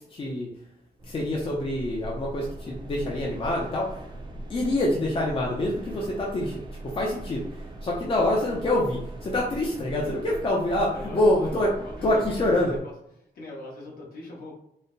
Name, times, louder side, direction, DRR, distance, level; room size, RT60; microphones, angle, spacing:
voice 1, 0.1-0.5 1.1-4.0 4.5-7.5 7.8-11.7 12.0-12.8, left 1 dB, 35° left, -3 dB, 0.6 m, -26 dB
sound 1, 1.0-12.8, right 1 dB, 30° right, 0.6 m, -40 dB
voice 2, 10.9-12.9 13.3-14.5, left 2 dB, 60° left, -3 dB, 1.2 m, -41 dB
4.1 x 2.1 x 3.9 m, 0.76 s
wide cardioid pair, 175°, 17 cm